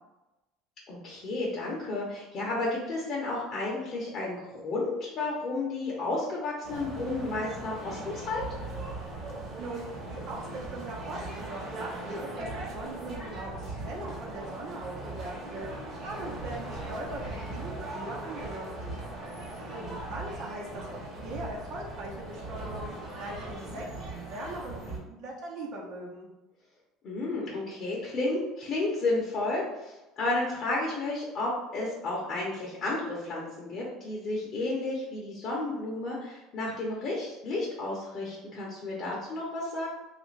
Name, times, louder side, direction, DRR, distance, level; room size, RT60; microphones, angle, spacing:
voice 1, 0.9-8.4 27.0-39.9, left 2 dB, 40° left, -4 dB, 0.7 m, -32 dB
sound 1, 6.6-25.0, right 2 dB, 30° right, 1.0 m, -39 dB
voice 2, 9.6-15.7 16.0-18.7 19.7-26.3, right 2 dB, 55° right, -1 dB, 0.9 m, -40 dB
3.2 x 2.5 x 3.2 m, 1.0 s
cardioid pair, 155°, 0 cm